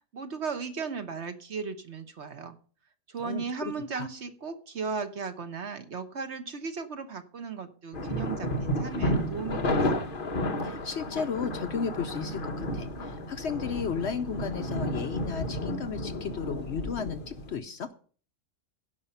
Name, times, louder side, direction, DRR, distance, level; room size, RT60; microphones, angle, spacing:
voice 1, 0.1-2.6 3.1-10.0, right 5 dB, 50° right, 9 dB, 1.2 m, -36 dB
voice 2, 3.2-4.1 10.6-17.9, left 6 dB, 55° left, 10 dB, 0.9 m, -34 dB
sound 1, 7.9-17.6, left 1 dB, 40° left, 1.2 m, -32 dB
16.0 x 5.6 x 5.6 m, 0.42 s
omnidirectional pair, 1.5 m